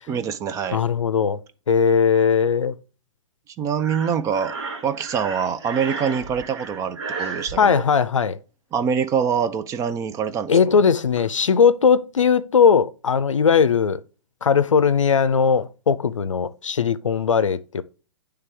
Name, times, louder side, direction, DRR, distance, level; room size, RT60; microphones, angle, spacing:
voice 1, 0.1-0.8 3.6-4.5 4.8-7.8 8.7-10.8, right 7 dB, 20° right, 0.4 m, -25 dB
voice 2, 0.7-1.4 1.7-2.8 7.6-8.4 10.5-14.0 14.4-17.8, left 6 dB, 90° left, 0.5 m, -19 dB
Breathing, 3.8-7.5, right 4 dB, 60° right, 1.5 m, -33 dB
9.5 x 3.4 x 3.4 m
hypercardioid pair, 120°, 16 cm